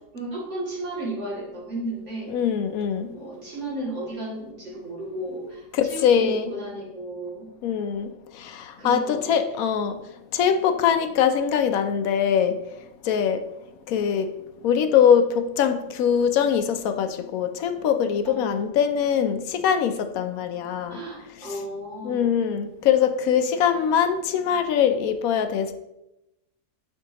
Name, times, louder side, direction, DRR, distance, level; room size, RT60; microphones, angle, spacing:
voice 1, 0.1-2.3 3.1-7.5 8.8-9.4 18.2-18.6 20.9-22.3, right 1 dB, 45° right, -6 dB, 2.5 m, -34 dB
voice 2, 2.3-3.1 5.7-6.5 7.6-10.0 10.3-12.6 13.0-13.4 13.9-14.3 14.6-21.0 22.0-25.7, left 8 dB, 70° left, 9 dB, 0.9 m, -22 dB
8.4 x 4.5 x 2.9 m, 0.89 s
omnidirectional pair, 1.8 m